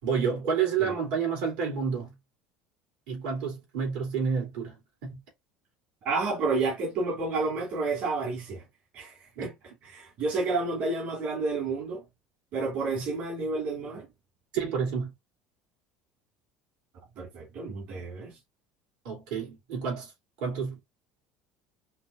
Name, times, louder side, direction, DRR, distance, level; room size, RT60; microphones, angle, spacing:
voice 1, 0.0-2.1 3.1-4.8 5.0-5.1 9.4-9.5 14.5-15.1 19.0-20.1 20.4-20.8, right 6 dB, 80° right, 3.1 m, -29 dB
voice 2, 6.0-8.6 8.9-9.5 9.8-12.0 12.5-14.1 17.2-18.4, right 3 dB, 55° right, 2.1 m, -30 dB
5.6 x 2.7 x 2.6 m
cardioid pair, 135°, 3 cm